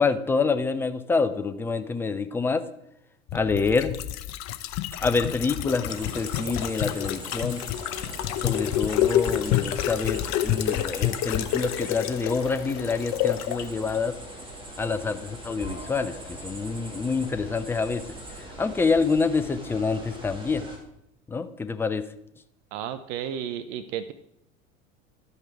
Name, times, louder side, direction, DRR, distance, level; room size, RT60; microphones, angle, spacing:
voice 1, 0.0-2.6 3.3-3.9 5.0-7.6 8.4-14.1 14.8-18.0 18.6-20.7 21.3-22.0, left 4 dB, 5° left, 10 dB, 0.4 m, -26 dB
sound 1, 3.3-13.7 13.9-14.0, left 12 dB, 40° left, 0.7 m, -28 dB
sound 2, 5.9-20.8, right 1 dB, 10° right, 2.2 m, -41 dB
voice 2, 22.7-24.1, right 9 dB, 55° right, 12 dB, 0.7 m, -33 dB
12.0 x 5.5 x 4.7 m, 0.76 s
figure-of-eight pair, 80°, 40 cm